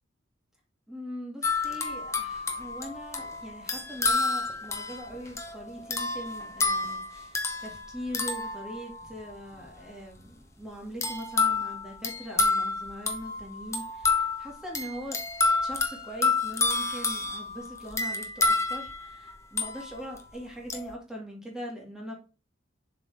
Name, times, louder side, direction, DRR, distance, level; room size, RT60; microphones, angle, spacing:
voice 1, 0.9-15.2 15.6-22.1, equal, 5° right, -2 dB, 1.9 m, -41 dB
sound 1, 1.4-9.3 11.0-20.2 20.7-20.9, left 3 dB, 15° left, 0.8 m, -29 dB
7.3 x 3.9 x 3.4 m, 0.33 s
head